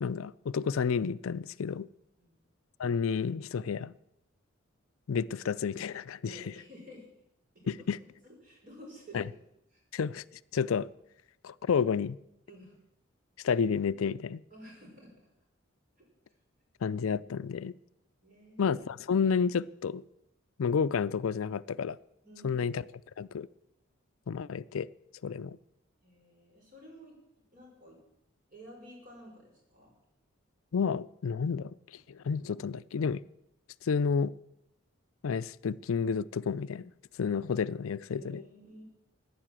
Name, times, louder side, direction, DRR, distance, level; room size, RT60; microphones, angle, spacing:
voice 1, 0.0-1.9 2.8-3.9 5.1-6.5 7.7-8.0 9.1-9.3 9.9-10.2 10.5-10.9 11.4-12.2 13.4-14.4 16.8-17.7 18.6-20.0 20.6-22.0 22.4-22.8 23.2-23.5 24.3-24.9 25.2-25.6 30.7-31.8 32.1-33.2 33.8-34.3 35.2-36.9 37.2-38.4, left 6 dB, 85° left, 18 dB, 0.4 m, -30 dB
voice 2, 6.2-7.1 7.5-7.9 8.2-9.4 9.7-9.8 12.5-12.8 14.5-15.1 16.0-16.1 18.2-18.6 22.2-22.7 26.0-27.1 27.5-28.0 28.5-29.9 38.1-38.8, equal, 40° right, -1 dB, 5.5 m, -51 dB
14.5 x 10.0 x 7.5 m, 0.81 s
head